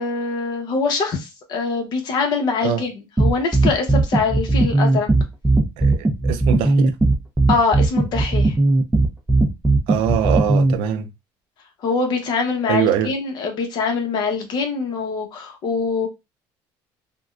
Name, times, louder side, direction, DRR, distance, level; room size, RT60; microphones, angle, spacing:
voice 1, 0.0-2.9 3.2-5.1 7.5-8.5 11.8-16.1, left 4 dB, 50° left, 0.9 m, -23 dB
sound 1, 3.2-10.7, right 2 dB, 10° right, 0.5 m, -17 dB
voice 2, 5.8-6.9 9.9-11.1 12.7-13.1, right 9 dB, 85° right, 0.5 m, -22 dB
3.5 x 2.2 x 2.4 m
cardioid pair, 135°, 9 cm